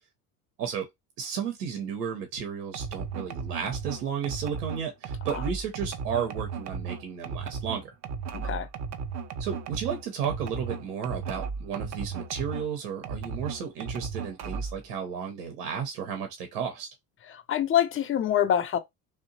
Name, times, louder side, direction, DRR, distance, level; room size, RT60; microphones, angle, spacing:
voice 1, 1.2-7.9 9.4-16.9, right 7 dB, 80° right, 0.7 m, -33 dB
sound 1, 2.7-12.7 13.0-14.8, right 5 dB, 35° right, 0.5 m, -35 dB
voice 2, 8.3-8.7 17.5-18.8, left 10 dB, 30° left, 0.5 m, -25 dB
2.8 x 2.1 x 2.6 m
hypercardioid pair, 65°, 46 cm